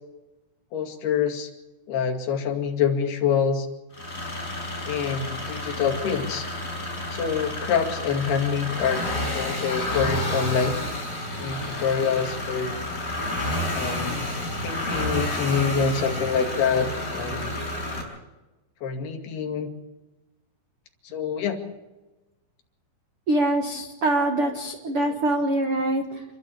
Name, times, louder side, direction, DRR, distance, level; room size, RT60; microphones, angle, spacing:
voice 1, 0.7-1.5 1.9-3.7 4.9-6.5 7.1-9.0 9.3-10.8 11.4-12.9 13.7-14.3 14.6-17.5 18.8-19.7 21.0-21.6, left 6 dB, 60° left, 3 dB, 4.1 m, -26 dB
sound 1, 3.9-18.0, left 1 dB, 15° left, 5.6 m, -30 dB
voice 2, 23.3-26.2, right 1 dB, 75° right, 4 dB, 1.2 m, -24 dB
28.0 x 12.5 x 8.5 m, 1.1 s
omnidirectional pair, 5.3 m